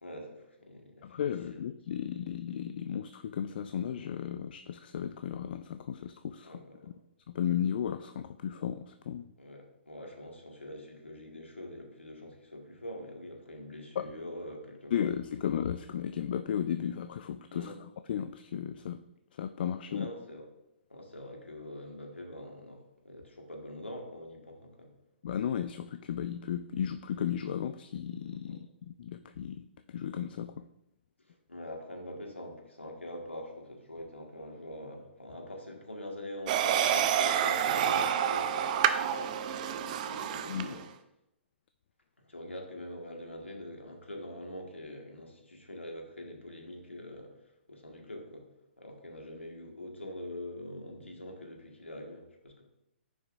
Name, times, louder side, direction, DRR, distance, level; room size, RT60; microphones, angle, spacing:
voice 1, 0.0-1.2 1.5-1.6 6.4-6.9 9.4-15.1 17.5-17.8 19.9-20.5 20.9-24.9 28.5-28.6 31.3-40.8 42.2-47.3 47.7-48.4 48.8-52.6, left 1 dB, 85° left, 1 dB, 1.8 m, -44 dB
voice 2, 1.0-6.6 7.3-9.3 14.0-14.1 14.9-17.7 18.1-19.0 19.4-20.1 25.2-29.6 29.9-30.7 40.5-40.8, left 9 dB, 50° left, 10 dB, 0.3 m, -34 dB
sound 1, 36.5-40.8, right 9 dB, 40° right, 0.5 m, -28 dB
9.8 x 5.8 x 2.6 m, 0.86 s
figure-of-eight pair, 125°, 6 cm